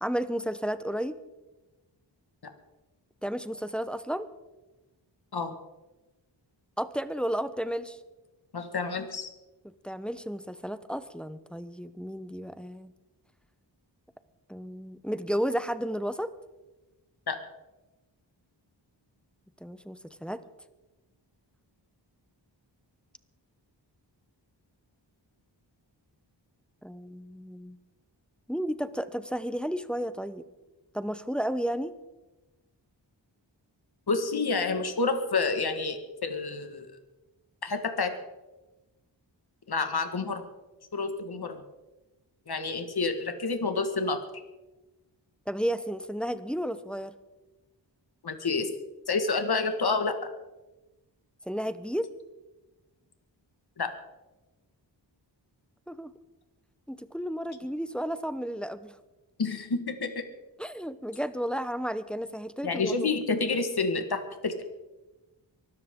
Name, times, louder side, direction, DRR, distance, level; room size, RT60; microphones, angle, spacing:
voice 1, 0.0-1.2 3.2-4.3 6.8-8.0 9.8-12.9 14.5-16.3 19.6-20.4 26.8-27.8 28.5-30.4 30.9-31.9 45.5-47.1 51.5-52.1 55.9-56.1 56.9-58.9 60.6-63.1, equal, ahead, 12 dB, 0.9 m, -32 dB
voice 2, 8.5-9.3 17.3-17.4 34.1-36.9 37.6-38.1 39.7-40.4 40.9-41.6 42.5-44.2 48.2-48.7 49.1-50.2 53.8-53.9 59.4-60.2 62.6-64.6, left 4 dB, 55° left, 7 dB, 1.8 m, -29 dB
24.0 x 13.5 x 3.8 m, 1.1 s
wide cardioid pair, 60°, 45 cm